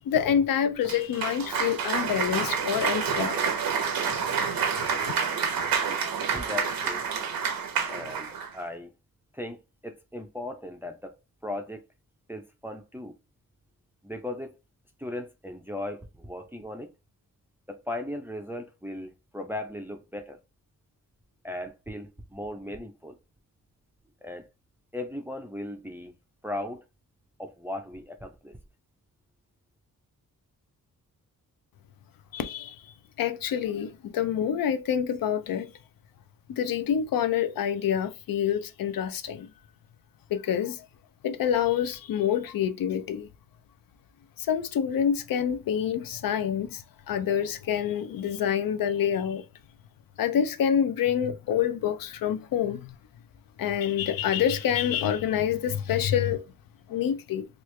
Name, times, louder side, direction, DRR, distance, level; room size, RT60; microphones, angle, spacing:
voice 1, 0.0-3.4 4.8-5.1 32.3-32.8 33.2-35.7 36.5-39.5 40.3-40.9 41.2-43.3 44.4-49.4 50.2-53.0 53.6-56.5 56.9-57.5, left 9 dB, 75° left, 0.5 m, -27 dB
Cheering / Applause, 0.8-8.5, right 6 dB, 75° right, 0.8 m, -28 dB
voice 2, 6.3-7.1 7.9-8.9 9.3-11.8 12.3-13.1 14.0-14.6 15.0-16.9 17.7-20.4 21.4-23.2 24.2-24.5 24.9-26.1 26.4-26.8 27.4-28.6, left 1 dB, 5° right, 0.4 m, -37 dB
3.0 x 2.4 x 3.1 m
wide cardioid pair, 165°, 35 cm